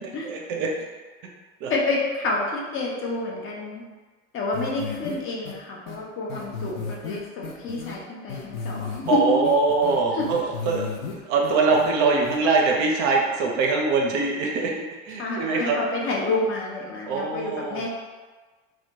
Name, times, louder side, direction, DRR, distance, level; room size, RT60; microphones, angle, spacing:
voice 1, 0.0-0.7 1.6-1.7 9.1-14.7 15.0-15.8 17.1-17.8, right 4 dB, 45° right, 0 dB, 0.5 m, -23 dB
voice 2, 1.7-3.8 4.3-9.5 10.1-10.3 15.2-17.9, left 2 dB, 35° left, -2 dB, 0.5 m, -28 dB
sound 1, 4.5-5.1 5.5-5.6 5.9-6.0 6.3-8.0 8.3-9.2 9.4-11.1 11.4-11.9 12.2-12.4, left 5 dB, 85° left, 0.5 m, -34 dB
2.1 x 2.1 x 2.7 m, 1.3 s
figure-of-eight pair, 70°, 40 cm